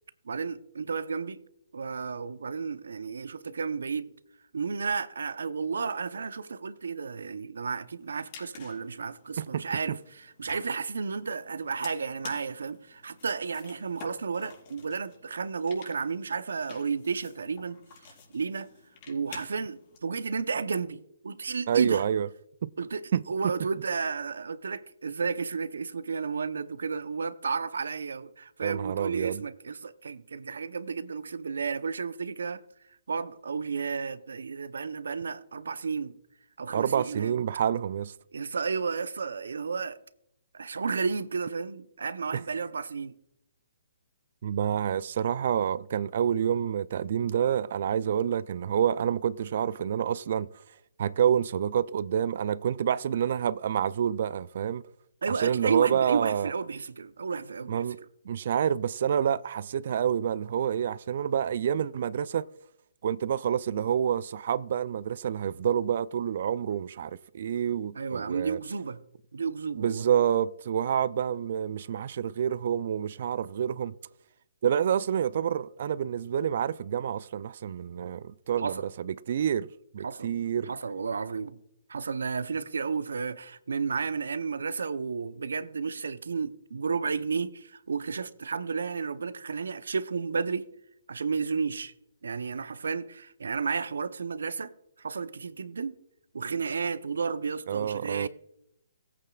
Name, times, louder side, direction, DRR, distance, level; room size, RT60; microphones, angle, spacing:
voice 1, 0.2-1.4 1.7-4.1 4.5-17.8 18.3-18.7 19.1-22.0 22.8-32.6 33.1-36.1 36.6-37.4 38.3-40.0 40.5-43.1 55.2-57.8 67.9-69.0 69.3-70.1 78.6-78.8 80.0-80.3 80.7-81.6 81.9-90.7 91.1-91.9 92.2-94.7 95.0-96.0 96.3-98.3, right 5 dB, 75° right, 0.7 m, -32 dB
sound 1, 8.0-20.0, left 5 dB, 40° left, 4.5 m, -51 dB
voice 2, 9.4-10.0 21.7-22.3 22.6-22.7 23.1-23.5 28.6-29.4 36.7-38.1 42.3-42.4 44.4-50.6 51.0-54.8 55.3-56.5 57.7-58.0 58.3-62.4 63.0-68.6 69.8-73.9 74.6-79.7 79.9-80.7 97.7-98.3, right 9 dB, 55° right, 0.3 m, -28 dB
19.0 x 8.6 x 2.4 m
hypercardioid pair, 135°, 0 cm